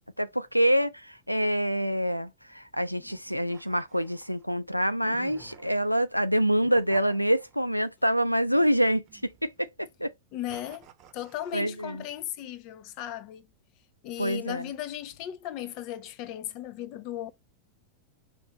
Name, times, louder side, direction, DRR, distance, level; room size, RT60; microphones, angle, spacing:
voice 1, 0.2-10.1 11.5-12.0 14.2-14.7, equal, 90° right, 0.4 m, -26 dB
sound 1, 3.1-4.4 5.0-6.0 6.6-7.8 8.5-9.6 10.5-11.7, right 10 dB, 40° right, 0.8 m, -51 dB
voice 2, 10.3-10.9 11.1-13.5 14.0-17.3, left 12 dB, 40° left, 0.6 m, -36 dB
5.3 x 3.2 x 2.8 m
figure-of-eight pair, 90°, 0 cm